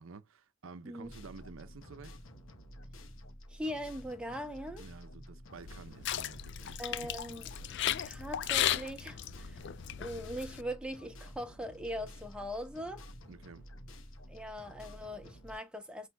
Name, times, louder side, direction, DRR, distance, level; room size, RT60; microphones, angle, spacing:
voice 1, 0.0-2.2 4.8-7.1 13.3-13.7, right 4 dB, 75° right, 0.6 m, -51 dB
sound 1, 1.0-15.6, equal, 75° left, 0.9 m, -51 dB
voice 2, 3.5-4.8 6.8-7.8 8.0-9.6 10.0-13.0 14.3-16.1, equal, 5° right, 1.0 m, -41 dB
sound 2, 5.5-10.6, left 11 dB, 60° left, 0.4 m, -35 dB
5.9 x 3.0 x 2.2 m
head